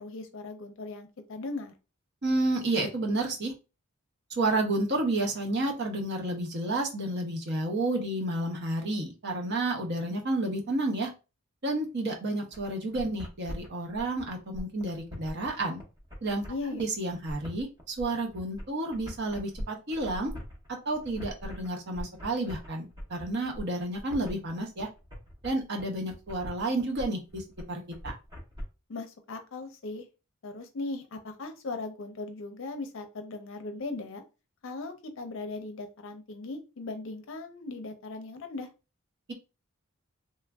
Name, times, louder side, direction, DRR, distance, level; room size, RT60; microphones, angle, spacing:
voice 1, 0.0-1.7 16.5-16.8 28.9-30.1 30.4-34.2 34.6-38.7, left 3 dB, 60° left, 7 dB, 0.5 m, -38 dB
voice 2, 2.2-3.5 4.3-11.1 11.6-15.8 16.2-16.4 16.7-20.3 20.9-24.9 25.4-28.1, right 2 dB, 50° right, 2 dB, 0.7 m, -30 dB
sound 1, 12.5-28.6, equal, 20° right, 0.7 m, -42 dB
3.1 x 2.4 x 2.2 m, 0.29 s
head